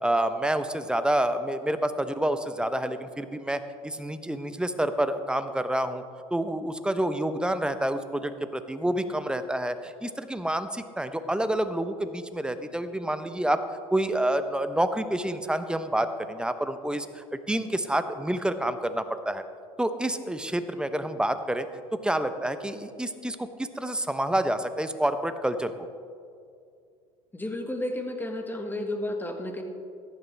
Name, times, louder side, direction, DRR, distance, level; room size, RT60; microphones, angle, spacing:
voice 1, 0.0-6.0 6.3-13.6 13.9-19.4 19.8-21.7 22.0-25.7, right 1 dB, 5° right, 10 dB, 0.8 m, -28 dB
voice 2, 27.3-29.6, left 1 dB, 10° left, 4 dB, 1.7 m, -32 dB
15.0 x 11.0 x 3.4 m, 2.3 s
hypercardioid pair, 75°, 18 cm